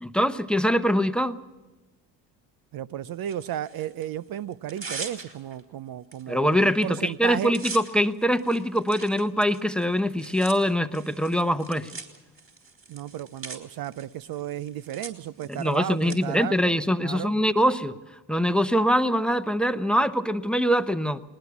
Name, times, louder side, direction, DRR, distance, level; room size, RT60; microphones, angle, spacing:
voice 1, 0.0-1.4 6.3-11.9 15.5-18.0 18.3-21.2, equal, ahead, 12 dB, 0.9 m, -23 dB
voice 2, 2.7-7.5 12.9-17.3, right 11 dB, 55° right, 16 dB, 0.6 m, -34 dB
Tearing, 3.2-4.1 4.5-5.6 6.1-6.2 6.5-6.8 7.1-16.2, right 4 dB, 30° right, 3.9 m, -42 dB
20.0 x 19.5 x 7.2 m, 1.1 s
supercardioid pair, 75°, 44 cm